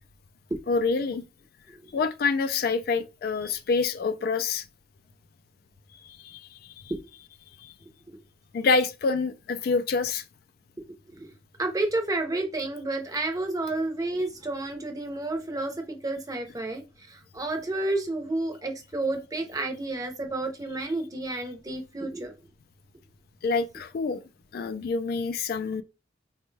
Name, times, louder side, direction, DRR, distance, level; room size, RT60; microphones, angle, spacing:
voice 1, 0.7-1.2 1.9-4.6 6.0-6.9 7.6-7.7 8.5-10.2 23.4-24.2 24.5-25.8, left 4 dB, 55° left, 0.3 m, -27 dB
voice 2, 11.6-22.3, right 2 dB, 20° right, 0.6 m, -30 dB
4.2 x 2.2 x 3.2 m
head